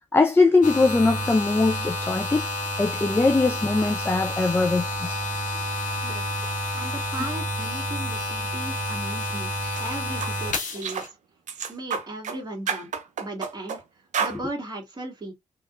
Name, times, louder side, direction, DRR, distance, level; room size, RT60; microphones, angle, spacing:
voice 1, 0.1-2.5 2.8-5.2, left 3 dB, 15° left, 0.5 m, -21 dB
sound 1, 0.6-11.1, left 1 dB, 55° left, 1.5 m, -29 dB
voice 2, 6.7-9.5 9.8-11.1 11.7-12.9 13.2-13.8 14.2-15.3, right 2 dB, 25° right, 1.9 m, -36 dB
sound 2, 9.6-9.8 10.2-10.3 10.8-11.1 11.5-12.4 12.7-13.8 14.1-14.4, right 6 dB, 55° right, 0.8 m, -30 dB
3.5 x 2.9 x 2.5 m
hypercardioid pair, 45°, 15 cm